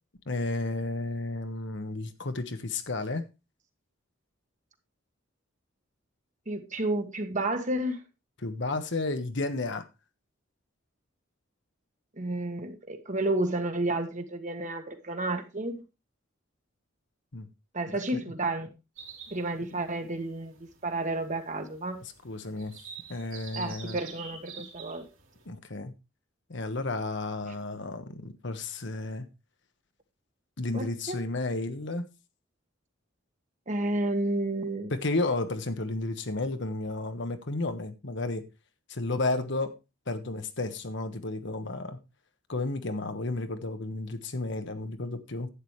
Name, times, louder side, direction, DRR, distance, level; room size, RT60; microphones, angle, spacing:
voice 1, 0.3-3.3 8.4-9.9 17.3-17.5 17.9-18.2 22.2-22.7 23.1-24.0 25.5-25.9 26.5-29.2 30.6-32.1 34.9-38.4 38.9-39.8 40.1-42.0 42.5-45.5, left 2 dB, 60° left, 1.2 m, -32 dB
voice 2, 6.5-8.0 12.2-15.8 17.7-18.7 19.3-20.6 20.8-22.0 23.5-25.1 30.7-31.2 33.7-34.9, right 2 dB, 40° right, 1.5 m, -31 dB
sound 1, 19.0-25.5, right 6 dB, 85° right, 3.3 m, -47 dB
11.5 x 8.9 x 3.2 m
head